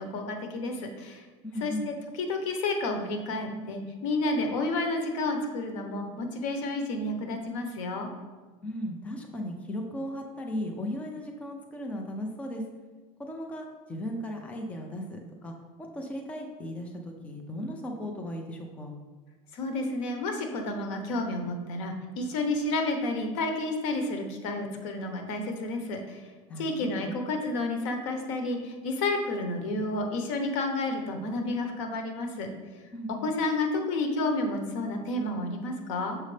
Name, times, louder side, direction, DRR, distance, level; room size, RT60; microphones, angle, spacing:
voice 1, 0.0-1.2 1.6-8.1 19.5-26.3 26.6-32.5 33.2-36.2, left 2 dB, 85° left, 4 dB, 1.0 m, -30 dB
voice 2, 1.4-1.9 8.6-12.6 13.2-18.9 26.5-27.2 32.9-33.3, left 1 dB, 10° left, 2 dB, 0.5 m, -36 dB
6.5 x 5.2 x 3.3 m, 1.3 s
cardioid pair, 170°, 16 cm